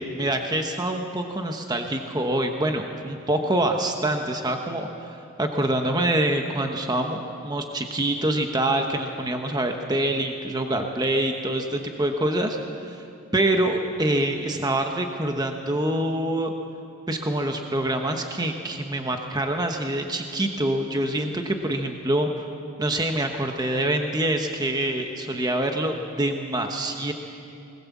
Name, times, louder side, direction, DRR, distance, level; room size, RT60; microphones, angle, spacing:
voice 1, 0.0-12.6 12.9-13.0 13.3-16.5 17.1-22.3 22.8-27.1, right 1 dB, 20° right, 4 dB, 1.1 m, -25 dB
20.5 x 20.0 x 7.3 m, 2.5 s
head